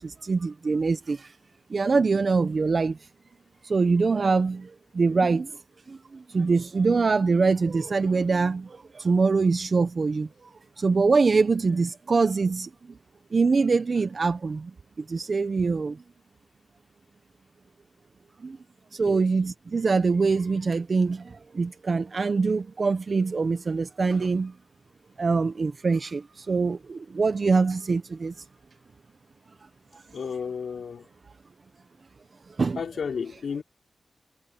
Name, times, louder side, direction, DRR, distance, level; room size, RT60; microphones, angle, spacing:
voice 1, 0.0-1.3 1.7-3.0 3.6-5.5 5.9-10.3 10.8-12.7 13.3-14.7 15.0-16.0 18.4-18.6 18.9-24.5 25.2-28.4 29.9-30.0 32.6-32.8, right 4 dB, 60° right, 1.2 m, -24 dB
voice 2, 30.1-31.1 32.8-33.6, left 6 dB, 80° left, 3.7 m, -32 dB
cardioid pair, 45°, 0 cm